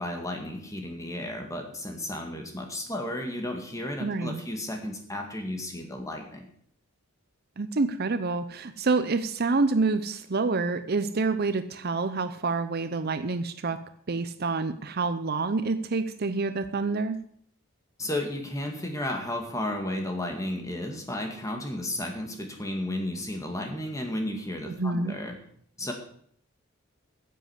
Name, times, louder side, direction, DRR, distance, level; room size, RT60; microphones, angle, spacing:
voice 1, 0.0-6.5 18.0-25.4 25.8-25.9, left 1 dB, 15° left, 3 dB, 2.1 m, -33 dB
voice 2, 4.0-4.4 7.6-13.8 14.1-17.2 24.7-25.1, right 3 dB, 45° right, 11 dB, 0.7 m, -27 dB
10.0 x 7.9 x 8.1 m, 0.63 s
head